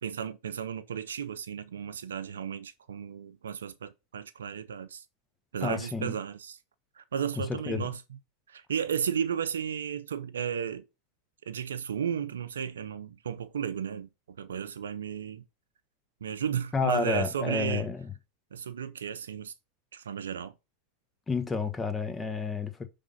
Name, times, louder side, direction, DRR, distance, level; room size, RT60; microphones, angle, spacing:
voice 1, 0.0-5.0 5.5-6.6 7.0-8.0 8.5-10.8 11.5-15.4 16.2-17.9 18.5-19.5 19.9-20.5, right 8 dB, 85° right, 0.5 m, -34 dB
voice 2, 5.6-6.2 7.7-7.9 16.7-18.1 21.3-22.9, left 4 dB, 15° left, 1.2 m, -30 dB
5.5 x 3.6 x 5.2 m
hypercardioid pair, 100°, 0 cm